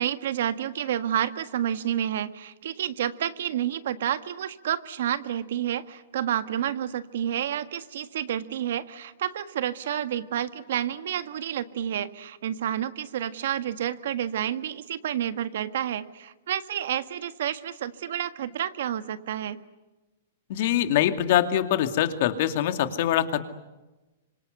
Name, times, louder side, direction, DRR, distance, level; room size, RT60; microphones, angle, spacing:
voice 1, 0.0-19.6, right 10 dB, 70° right, 11 dB, 1.7 m, -29 dB
voice 2, 20.5-23.4, left 11 dB, 55° left, 8 dB, 2.4 m, -23 dB
27.0 x 26.0 x 8.0 m, 1.1 s
hypercardioid pair, 150°, 0 cm